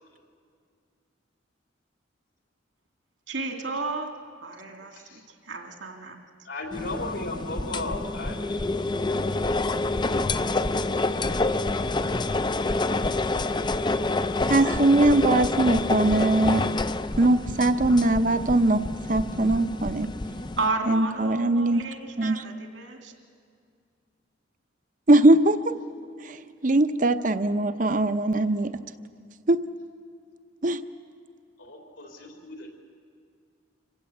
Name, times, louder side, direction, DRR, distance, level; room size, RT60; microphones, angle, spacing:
voice 1, 3.3-4.1 4.4-6.2 20.6-23.1, right 3 dB, 75° right, 4 dB, 2.4 m, -32 dB
voice 2, 4.9-5.3 6.4-8.6 14.5-14.7 31.6-32.7, left 2 dB, 80° left, 1 dB, 3.9 m, -36 dB
sound 1, 6.7-20.7, left 2 dB, 25° left, 0.5 m, -27 dB
voice 3, 14.5-16.6 17.2-18.8 19.1-20.1 20.9-21.8 22.2-22.4 25.1-25.7 26.2-28.8 29.5-29.6 30.6-30.8, right 2 dB, 45° right, 11 dB, 0.7 m, -21 dB
26.5 x 15.5 x 8.4 m, 2.3 s
head